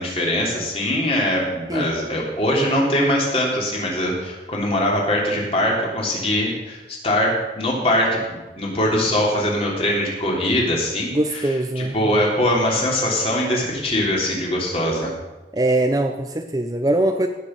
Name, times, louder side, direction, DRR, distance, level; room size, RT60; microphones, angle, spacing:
voice 1, 0.0-6.8 7.0-15.1, left 1 dB, 35° left, -2 dB, 3.3 m, -22 dB
voice 2, 11.1-12.2 15.5-17.3, right 1 dB, 20° right, 6 dB, 0.6 m, -22 dB
17.5 x 6.8 x 6.6 m, 1.1 s
head